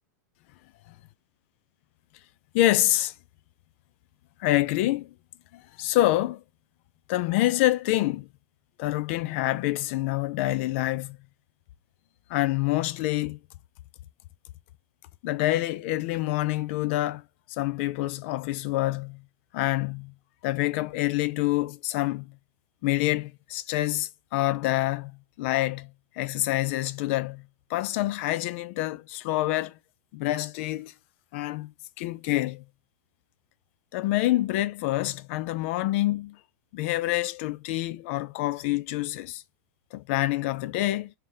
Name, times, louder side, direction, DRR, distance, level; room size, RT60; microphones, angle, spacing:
voice 1, 2.5-3.1 4.4-5.1 5.5-6.4 7.1-8.3 8.8-11.2 12.3-13.4 15.2-17.2 17.5-19.2 19.5-20.1 20.4-22.4 22.8-29.8 30.1-30.9 31.3-32.6 33.9-36.4 36.7-39.4 39.9-41.1, left 16 dB, 45° left, 0.5 m, -27 dB
3.4 x 2.9 x 3.3 m
supercardioid pair, 160°, 9 cm